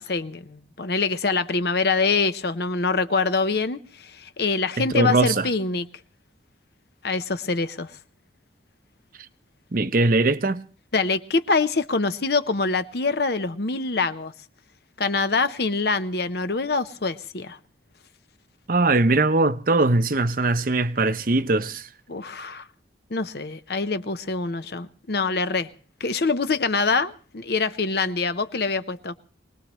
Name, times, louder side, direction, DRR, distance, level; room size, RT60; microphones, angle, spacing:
voice 1, 0.0-5.9 7.0-7.9 10.9-14.3 15.0-17.6 22.1-22.7 23.1-25.7 26.0-29.1, left 4 dB, 60° left, 0.8 m, -25 dB
voice 2, 4.8-5.5 9.7-10.6 18.7-21.9, right 2 dB, 50° right, 0.7 m, -21 dB
24.5 x 19.0 x 3.1 m
head